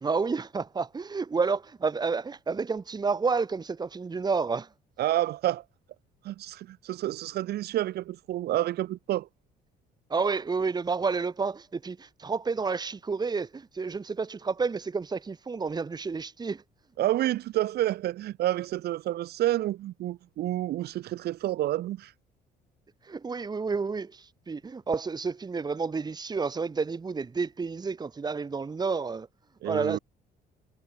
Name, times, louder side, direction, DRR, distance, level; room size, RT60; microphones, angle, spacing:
voice 1, 0.0-4.7 10.1-16.6 23.0-29.3 29.6-30.0, right 4 dB, 25° right, 2.6 m, -30 dB
voice 2, 5.0-5.6 6.2-9.3 17.0-22.1 29.6-30.0, right 14 dB, 70° right, 3.6 m, -29 dB
cardioid pair, 110°, 17 cm